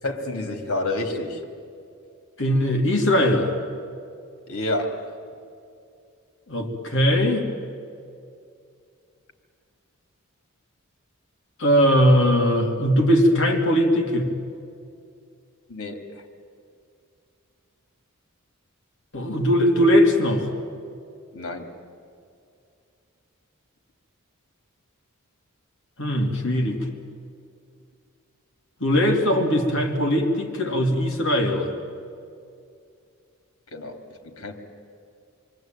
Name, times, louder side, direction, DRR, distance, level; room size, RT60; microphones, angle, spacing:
voice 1, 0.0-1.4 4.5-5.1 15.7-16.2 21.3-21.8 33.7-34.6, left 2 dB, 80° left, 4 dB, 3.4 m, -29 dB
voice 2, 2.4-3.5 6.5-7.5 11.6-14.3 19.1-20.5 26.0-26.8 28.8-31.7, equal, 60° left, 2 dB, 3.2 m, -20 dB
28.0 x 23.0 x 9.2 m, 2.4 s
head